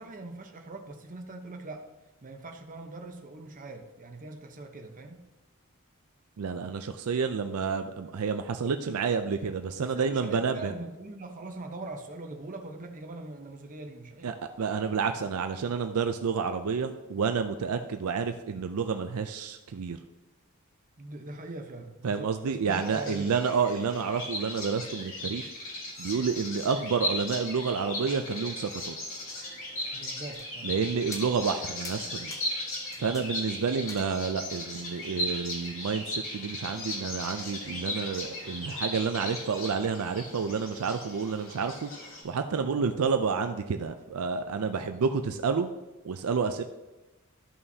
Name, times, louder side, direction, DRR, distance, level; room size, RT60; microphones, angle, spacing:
voice 1, 0.0-1.9 2.2-5.2 9.8-14.4 21.0-23.4 29.9-30.7 33.0-33.4 42.7-42.9 44.7-45.1, right 2 dB, 40° right, 4 dB, 0.9 m, -42 dB
voice 2, 6.4-10.7 14.2-20.0 22.0-25.5 26.0-29.0 30.6-32.3 33.0-41.9 42.2-45.7 46.0-46.6, right 5 dB, 75° right, 7 dB, 0.4 m, -29 dB
Bird vocalization bird call bird song, 22.7-42.2, left 1 dB, 65° left, 2.5 m, -37 dB
sound 1, 30.3-30.8 31.1-31.6 31.8-33.3 33.6-34.5 35.6-35.7, left 2 dB, 15° left, 0.8 m, -46 dB
12.5 x 5.5 x 2.8 m, 1.1 s
head